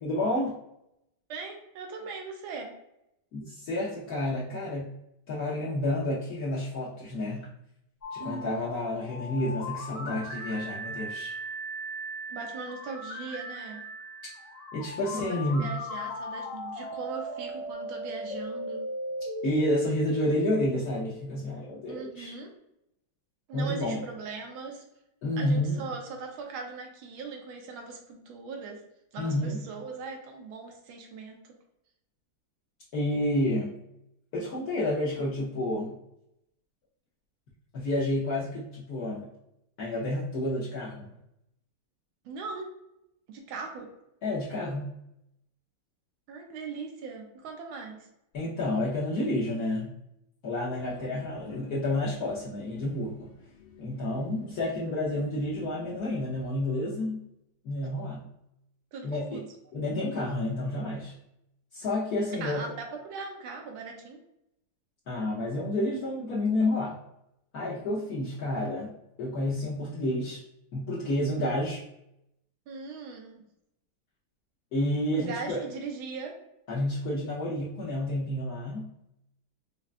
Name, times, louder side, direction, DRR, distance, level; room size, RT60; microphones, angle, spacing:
voice 1, 0.0-0.6 3.3-4.9 5.3-7.5 8.1-11.3 14.7-15.7 19.4-22.3 23.5-24.0 25.2-25.9 29.2-29.6 32.9-33.7 34.3-36.0 37.7-39.3 39.8-41.1 44.2-44.9 48.3-50.0 50.4-53.3 53.8-57.2 57.6-58.3 59.0-59.4 59.7-61.1 61.7-62.6 65.1-67.0 67.5-70.4 70.7-71.8 74.7-75.6 76.7-78.9, left 1 dB, 70° left, -6 dB, 0.9 m, -30 dB
voice 2, 1.3-2.7 8.2-8.6 12.3-13.8 15.1-18.9 21.9-22.5 23.5-24.8 25.4-28.8 29.1-31.4 42.2-42.7 43.3-43.9 46.3-48.1 50.8-51.2 58.9-59.5 62.4-64.2 67.9-68.1 72.7-73.4 75.1-76.3, right 4 dB, 75° right, 2 dB, 1.4 m, -39 dB
sound 1, 8.0-21.8, equal, 45° left, 1.3 m, -38 dB
sound 2, 50.8-56.5, left 5 dB, 85° left, 1.6 m, -50 dB
5.0 x 2.2 x 2.4 m, 0.81 s
omnidirectional pair, 2.4 m